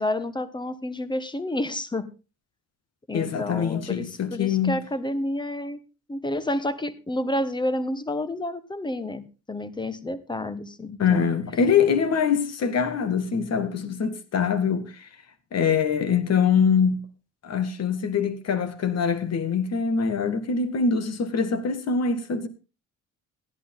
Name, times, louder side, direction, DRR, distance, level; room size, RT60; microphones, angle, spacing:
voice 1, 0.0-2.1 3.1-5.8 6.1-11.3, left 1 dB, 15° left, 1.3 m, -30 dB
voice 2, 3.1-4.8 11.0-15.1 15.5-17.0 17.4-22.5, left 6 dB, 55° left, 2.1 m, -24 dB
14.0 x 11.0 x 3.8 m
cardioid pair, 90°, 30 cm